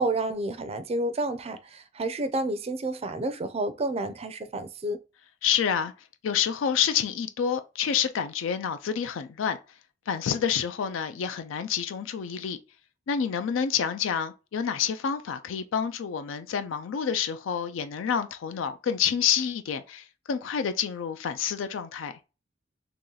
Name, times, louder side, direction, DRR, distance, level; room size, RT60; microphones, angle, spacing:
voice 1, 0.0-5.0, right 2 dB, 30° right, 0.4 m, -30 dB
voice 2, 5.4-5.9 6.2-9.6 10.1-12.6 13.1-22.1, left 7 dB, 75° left, 0.4 m, -28 dB
3.0 x 2.9 x 3.8 m
head